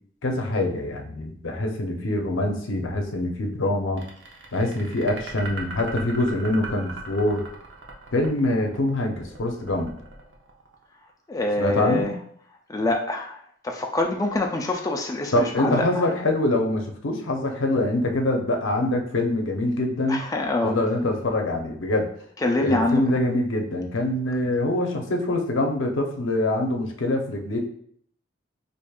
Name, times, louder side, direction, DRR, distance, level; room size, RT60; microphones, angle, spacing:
voice 1, 0.2-4.0 4.5-7.5 8.1-9.9 11.6-12.1 15.3-20.2 20.6-22.1 22.6-27.6, left 1 dB, 80° left, 3 dB, 0.6 m, -24 dB
sound 1, 4.0-11.1, right 3 dB, 65° right, 0.7 m, -39 dB
voice 2, 11.3-12.1 12.7-16.1 20.1-20.7 22.4-23.0, left 2 dB, 20° left, 1 dB, 0.3 m, -25 dB
4.9 x 2.5 x 2.3 m, 0.64 s
head